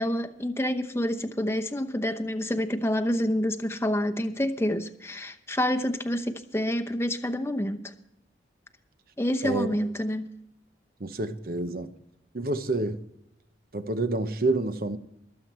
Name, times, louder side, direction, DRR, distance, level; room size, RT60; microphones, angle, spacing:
voice 1, 0.0-7.9 9.2-10.3, left 1 dB, 15° left, 0.9 m, -28 dB
voice 2, 11.0-11.9 12.3-13.1 13.7-15.0, right 2 dB, 55° right, 0.9 m, -28 dB
22.5 x 7.8 x 4.4 m
head